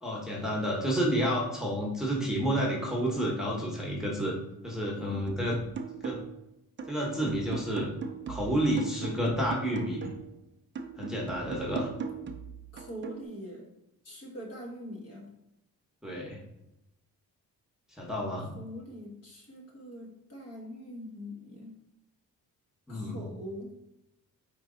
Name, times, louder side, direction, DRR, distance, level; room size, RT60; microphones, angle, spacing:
voice 1, 0.0-4.3 4.6-5.6 6.0-6.2 6.9-7.9 8.3-10.1 11.0-11.9 16.0-16.4 18.0-18.5 22.9-23.2, equal, ahead, -3 dB, 1.0 m, -30 dB
voice 2, 4.9-5.3 12.7-13.7 14.0-15.3 18.5-21.7 22.9-23.7, equal, 40° left, -2 dB, 1.5 m, -43 dB
sound 1, 5.3-6.4 6.8-10.3 10.8-13.3, right 5 dB, 30° right, 0.5 m, -39 dB
4.8 x 2.9 x 3.8 m, 0.87 s
cardioid pair, 105°, 36 cm